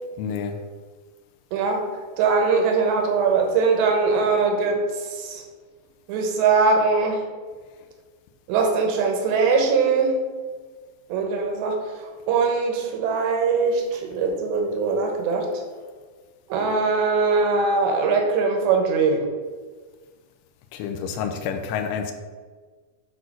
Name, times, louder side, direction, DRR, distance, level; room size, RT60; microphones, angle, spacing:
voice 1, 0.2-0.6 20.7-22.1, left 7 dB, 85° left, 6 dB, 3.0 m, -28 dB
voice 2, 1.5-1.8 2.2-5.4 6.1-7.2 8.5-10.1 11.1-11.8 12.0-15.6 16.5-19.3, right 4 dB, 70° right, 3 dB, 2.8 m, -21 dB
9.3 x 4.2 x 6.1 m, 1.4 s
omnidirectional pair, 5.9 m